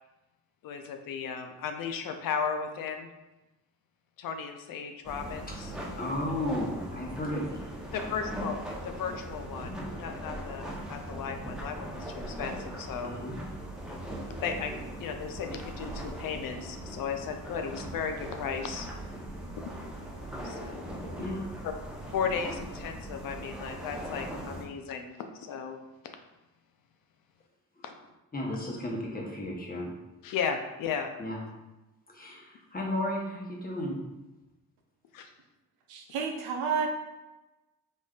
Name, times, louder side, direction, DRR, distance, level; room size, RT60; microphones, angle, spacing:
voice 1, 0.6-3.1 4.2-5.7 7.9-10.6 10.9-13.2 14.4-14.7 15.0-18.9 20.4-20.9 22.1-25.8 27.8-27.9 30.2-31.1 35.1-35.3, left 6 dB, 65° left, 6 dB, 0.5 m, -35 dB
sound 1, 5.0-24.6, right 1 dB, ahead, 0.7 m, -40 dB
voice 2, 6.0-7.6 9.6-10.0 13.0-13.4 21.2-21.5 27.8-27.9 28.3-29.9 31.2-31.4 32.1-34.0, left 1 dB, 25° left, -2 dB, 0.9 m, -34 dB
voice 3, 35.9-36.9, right 6 dB, 90° right, 3 dB, 0.6 m, -30 dB
3.6 x 2.5 x 2.4 m, 1.0 s
cardioid pair, 70°, 37 cm